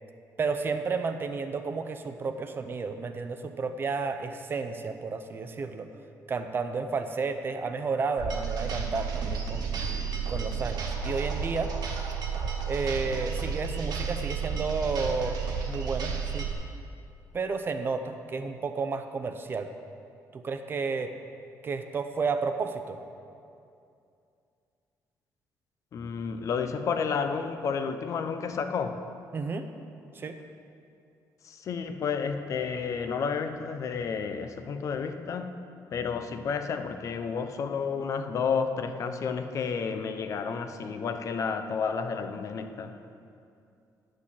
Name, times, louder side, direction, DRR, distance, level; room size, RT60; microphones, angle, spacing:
voice 1, 0.4-5.9 6.3-9.7 10.3-11.7 12.7-15.4 15.7-16.5 17.3-19.7 20.3-21.1 21.6-23.0 29.3-29.7 30.1-30.4, right 4 dB, 30° right, 8 dB, 0.6 m, -31 dB
sound 1, 8.2-16.5, right 6 dB, 70° right, 1.4 m, -32 dB
voice 2, 25.9-29.0 31.4-35.5 35.9-42.9, left 6 dB, 50° left, 8 dB, 0.6 m, -31 dB
10.0 x 6.4 x 7.3 m, 2.5 s
cardioid pair, 155°, 7 cm